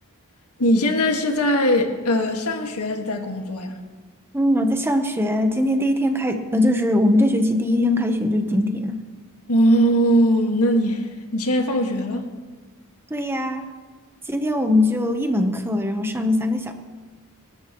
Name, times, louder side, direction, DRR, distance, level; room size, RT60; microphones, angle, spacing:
voice 1, 0.6-3.8 9.5-12.3, equal, 80° left, 1.8 m, -20 dB
voice 2, 4.3-9.0 13.1-13.6 14.3-16.7, left 1 dB, 10° right, 1.0 m, -21 dB
28.5 x 13.0 x 3.1 m
head